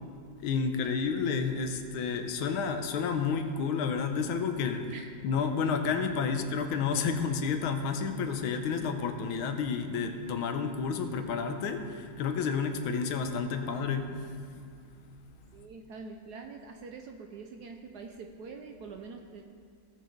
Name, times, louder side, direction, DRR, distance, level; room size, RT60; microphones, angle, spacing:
voice 1, 0.4-4.9 5.2-14.3, left 5 dB, 90° left, 7 dB, 1.6 m, -30 dB
voice 2, 15.5-19.4, right 4 dB, 70° right, 4 dB, 1.0 m, -45 dB
16.5 x 6.4 x 3.9 m, 2.3 s
omnidirectional pair, 2.2 m